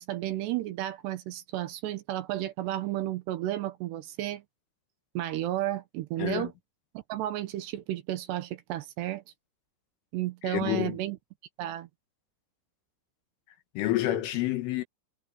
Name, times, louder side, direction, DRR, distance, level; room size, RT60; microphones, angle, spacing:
voice 1, 0.0-4.4 5.1-6.5 6.9-9.2 10.1-11.2 11.6-11.9, right 14 dB, 75° right, 2.8 m, -32 dB
voice 2, 6.2-6.5 10.4-11.0 13.8-14.8, left 14 dB, 90° left, 4.3 m, -28 dB
omnidirectional pair, 5.5 m